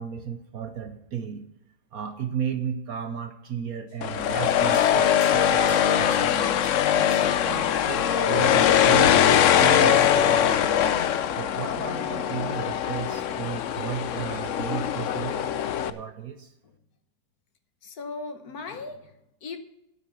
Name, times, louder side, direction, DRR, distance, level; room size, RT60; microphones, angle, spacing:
voice 1, 0.0-1.5 1.9-6.6 6.9-10.8 11.4-15.5 15.9-16.5, right 8 dB, 60° right, 8 dB, 1.1 m, -34 dB
sound 1, 3.9-5.4 5.7-6.2 6.6-6.8 7.1-7.2 8.8-9.3, equal, 10° left, 6.1 m, -44 dB
sound 2, 4.0-15.9, left 9 dB, 80° left, 0.7 m, -22 dB
voice 2, 17.8-19.6, left 4 dB, 55° left, 8 dB, 1.4 m, -38 dB
9.3 x 8.6 x 7.7 m, 0.88 s
omnidirectional pair, 2.1 m